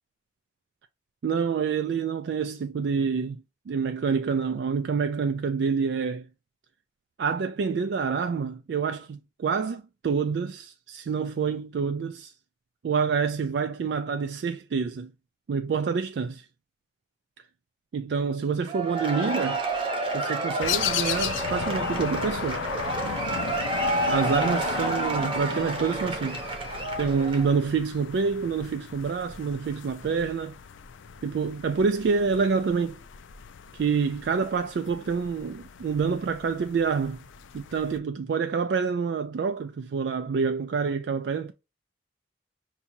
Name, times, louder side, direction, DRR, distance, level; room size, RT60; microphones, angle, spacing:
voice 1, 1.2-6.3 7.2-12.3 12.8-15.1 15.5-16.5 17.9-19.6 20.1-22.7 24.1-26.4 27.0-30.6 31.2-33.0 33.7-37.2 37.5-41.5, right 5 dB, 65° right, 0.3 m, -27 dB
Cheering / Applause / Crowd, 18.7-27.6, right 1 dB, 25° right, 0.8 m, -29 dB
sound 1, 20.6-38.0, left 8 dB, 90° left, 0.4 m, -36 dB
5.7 x 2.7 x 2.7 m
head